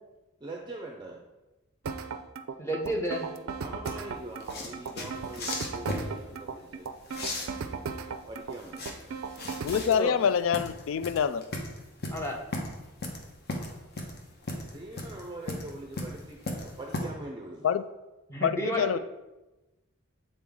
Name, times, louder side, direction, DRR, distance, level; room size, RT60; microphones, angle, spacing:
voice 1, 0.4-1.2 3.6-6.9 8.3-9.2 14.6-17.7, right 2 dB, 20° right, 1 dB, 0.5 m, -43 dB
sound 1, 1.8-9.9, right 5 dB, 85° right, 0.4 m, -36 dB
voice 2, 2.6-3.3 9.9-10.1 12.1-12.4 18.3-19.0, right 1 dB, 15° left, 0 dB, 0.7 m, -31 dB
sound 2, 3.9-17.0, left 2 dB, 50° left, 0.9 m, -37 dB
voice 3, 9.6-11.4 17.6-17.8 18.4-19.0, left 7 dB, 70° left, 14 dB, 0.3 m, -26 dB
7.6 x 4.0 x 3.6 m, 1.0 s
head